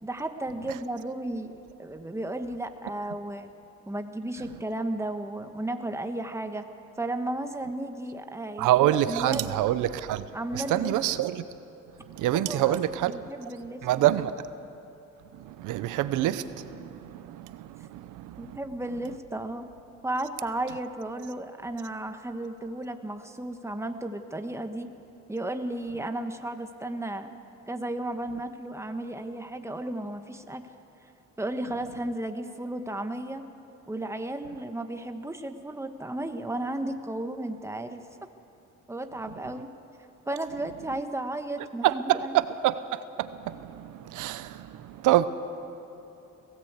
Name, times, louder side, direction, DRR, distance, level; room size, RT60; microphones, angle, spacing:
voice 1, 0.0-3.5 3.9-6.7 7.0-8.7 9.1-9.6 10.3-11.0 12.3-14.2 18.4-19.7 20.0-24.9 25.3-27.3 27.7-30.7 31.4-33.5 33.9-38.0 38.9-39.7 40.3-42.3, right 1 dB, 10° right, 1.4 m, -34 dB
voice 2, 8.6-10.3 10.5-11.4 12.1-13.3 13.8-14.3 15.3-18.6 41.8-45.3, right 13 dB, 90° right, 0.8 m, -26 dB
20.5 x 17.5 x 8.2 m
cardioid pair, 90°, 30 cm